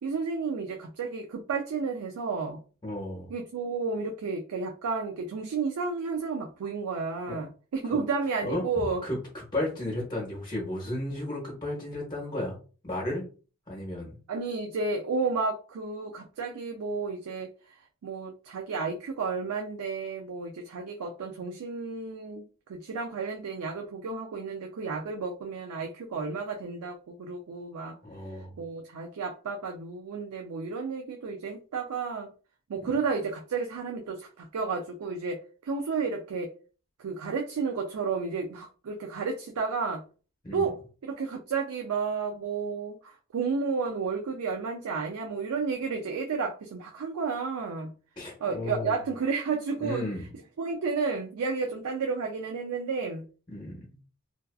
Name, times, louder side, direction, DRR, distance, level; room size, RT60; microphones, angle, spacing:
voice 1, 0.0-2.6 3.3-9.1 14.3-22.4 22.7-28.0 28.6-32.3 32.7-36.5 37.0-40.0 40.5-47.9 48.4-50.1 50.6-53.3, right 4 dB, 85° right, 2 dB, 0.4 m, -32 dB
voice 2, 2.8-3.3 7.3-7.4 8.4-8.6 9.0-12.5 12.8-13.2 13.7-14.2 28.0-28.5 40.4-40.7 48.2-48.9 49.8-50.3 53.5-53.8, left 1 dB, 20° left, -3 dB, 0.9 m, -33 dB
2.5 x 2.4 x 2.3 m, 0.37 s
head